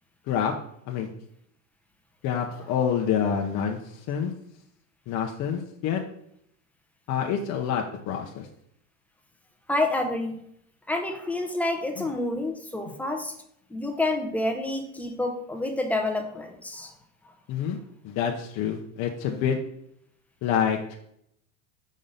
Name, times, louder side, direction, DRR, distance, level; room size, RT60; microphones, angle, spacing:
voice 1, 2.2-4.3 5.1-6.0 7.1-8.5 17.5-17.8 18.0-19.6 20.4-20.9, left 8 dB, 45° left, 1 dB, 0.8 m, -27 dB
voice 2, 9.7-10.4 10.9-13.4 13.7-16.9, left 2 dB, 5° left, 3 dB, 0.8 m, -28 dB
5.1 x 3.8 x 5.5 m, 0.73 s
supercardioid pair, 110°, 40 cm